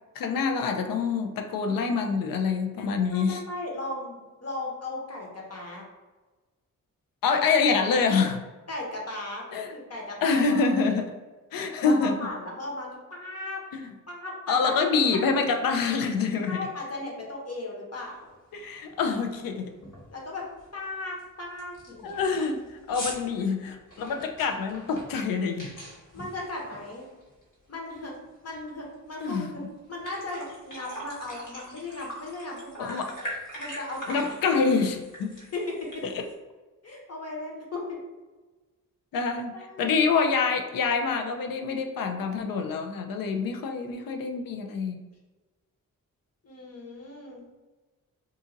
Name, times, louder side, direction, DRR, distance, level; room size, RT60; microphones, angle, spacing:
voice 1, 0.2-3.4 7.2-8.4 9.5-9.7 10.2-11.1 11.5-12.2 13.7-13.9 14.5-16.7 18.5-19.7 22.0-25.7 29.2-29.5 32.8-33.1 34.1-35.4 36.0-36.2 39.1-39.5 39.8-45.0, left 5 dB, 85° left, 6 dB, 0.5 m, -26 dB
voice 2, 3.1-5.8 8.7-9.4 9.7-11.0 11.8-13.6 14.1-14.8 15.3-15.6 16.5-18.3 20.1-20.4 20.7-22.2 26.1-27.1 27.7-28.1 28.4-29.6 29.9-33.1 33.6-34.6 35.5-36.0 36.8-38.0 39.5-40.0 46.4-47.5, left 2 dB, 50° left, -2 dB, 1.1 m, -36 dB
sound 1, 18.2-18.3 18.7-19.0 19.3-19.4 19.8-20.2 20.6-20.7 21.2-21.3 21.6-27.5 27.9-29.2 29.5-29.6 29.9-36.3, equal, 65° left, 1.4 m, -42 dB
2.7 x 2.5 x 3.8 m, 1.2 s
cardioid pair, 60°, 33 cm